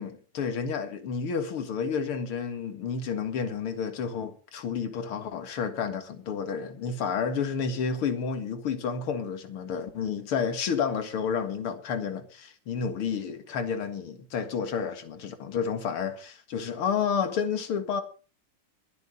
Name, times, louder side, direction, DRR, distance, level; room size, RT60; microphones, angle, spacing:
voice 1, 0.0-18.0, left 6 dB, 80° left, 2.6 m, -30 dB
22.5 x 8.4 x 4.1 m
omnidirectional pair, 2.4 m